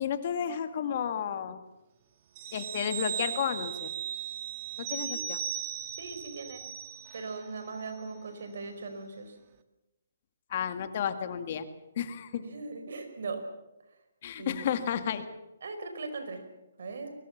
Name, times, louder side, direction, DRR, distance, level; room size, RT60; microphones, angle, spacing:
voice 1, 0.0-1.6 2.5-3.9 4.8-5.4 10.5-11.7 12.0-12.4 14.2-15.3, left 8 dB, 45° left, 9 dB, 1.9 m, -32 dB
sound 1, 2.4-7.5 7.8-7.9, right 9 dB, 35° right, 1.6 m, -37 dB
voice 2, 5.9-6.6 7.1-9.4 12.4-13.4 14.4-14.6 15.6-16.4 16.8-17.1, right 3 dB, 65° right, 7 dB, 5.0 m, -39 dB
23.0 x 20.5 x 7.3 m, 0.99 s
hypercardioid pair, 155°, 0 cm